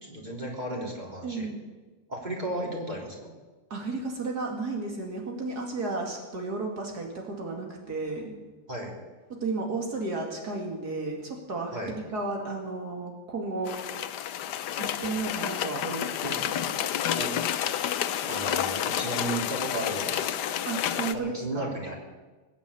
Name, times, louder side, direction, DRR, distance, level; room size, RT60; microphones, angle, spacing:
voice 1, 0.0-1.5 2.1-3.3 8.7-8.9 11.7-11.9 17.1-17.4 18.3-20.3 21.1-21.9, right 1 dB, 25° right, -2 dB, 3.4 m, -34 dB
voice 2, 1.2-1.6 3.7-8.3 9.4-13.8 14.8-16.7 20.7-21.7, right 3 dB, 70° right, 1 dB, 2.8 m, -33 dB
sound 1, 13.7-21.1, left 10 dB, 85° left, 1.4 m, -30 dB
20.5 x 8.3 x 8.3 m, 1.3 s
omnidirectional pair, 1.8 m